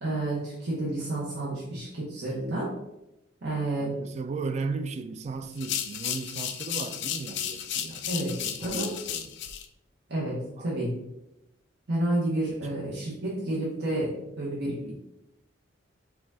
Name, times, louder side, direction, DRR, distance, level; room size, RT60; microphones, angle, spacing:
voice 1, 0.0-2.7 3.4-3.9 8.1-8.9 10.1-10.9 11.9-14.9, right 1 dB, 60° right, -5 dB, 0.9 m, -30 dB
voice 2, 3.8-9.4 10.6-10.9 12.7-12.8, right 4 dB, 35° right, 10 dB, 0.3 m, -36 dB
sound 1, 5.5-9.7, left 9 dB, 60° left, 0.4 m, -33 dB
4.9 x 2.3 x 3.5 m, 0.87 s
head